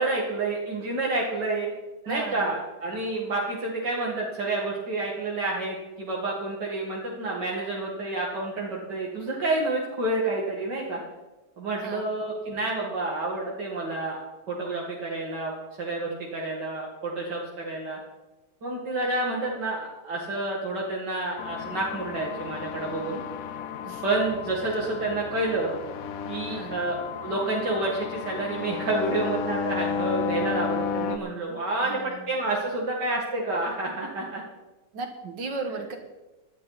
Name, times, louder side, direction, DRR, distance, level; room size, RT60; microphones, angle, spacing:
voice 1, 0.0-1.7 2.1-11.0 11.6-14.2 14.5-15.5 15.8-18.0 18.6-23.2 24.0-25.7 26.3-27.0 27.2-34.4, right 2 dB, 75° right, -3 dB, 2.8 m, -29 dB
voice 2, 2.1-2.5 11.8-12.1 23.8-24.0 26.4-26.8 31.8-32.2 34.9-36.0, right 3 dB, 90° right, 5 dB, 2.2 m, -35 dB
sound 1, 21.4-31.2, left 6 dB, 60° left, 1.1 m, -33 dB
19.0 x 12.0 x 4.1 m, 1.1 s
omnidirectional pair, 1.9 m